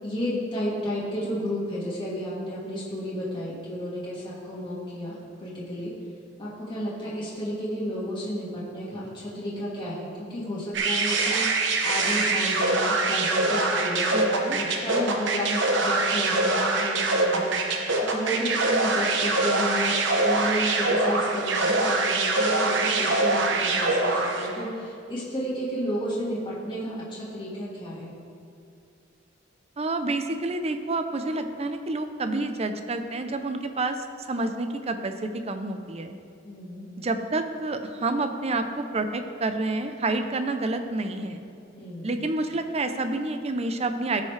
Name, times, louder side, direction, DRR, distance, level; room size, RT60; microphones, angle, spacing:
voice 1, 0.0-5.9 6.4-19.9 20.2-28.1 36.4-36.9 41.7-42.1, equal, 25° left, -8 dB, 1.9 m, -32 dB
sound 1, 10.7-24.6, right 2 dB, 65° right, 1.0 m, -24 dB
voice 2, 14.1-14.6 29.8-36.2 37.0-41.4 42.0-44.2, right 2 dB, 35° right, 7 dB, 0.6 m, -29 dB
16.5 x 5.6 x 3.3 m, 2.5 s
head